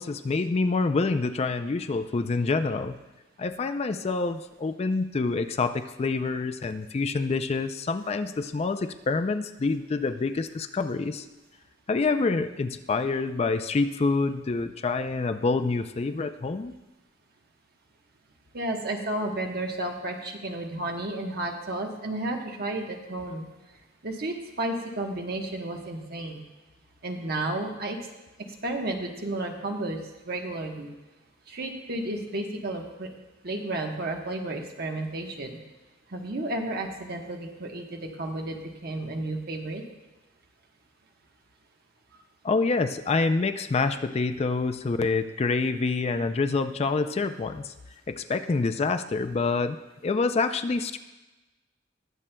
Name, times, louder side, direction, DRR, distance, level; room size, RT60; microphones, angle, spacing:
voice 1, 0.0-3.0 3.4-11.3 11.9-16.7 42.4-47.7 48.1-49.8 50.0-51.0, left 3 dB, 35° left, 9 dB, 0.4 m, -27 dB
voice 2, 18.5-23.5 24.0-26.4 27.0-28.1 28.4-30.9 31.5-33.1 33.4-35.5 36.1-39.8, right 2 dB, 55° right, 2 dB, 1.1 m, -32 dB
20.5 x 7.4 x 2.2 m, 1.1 s
head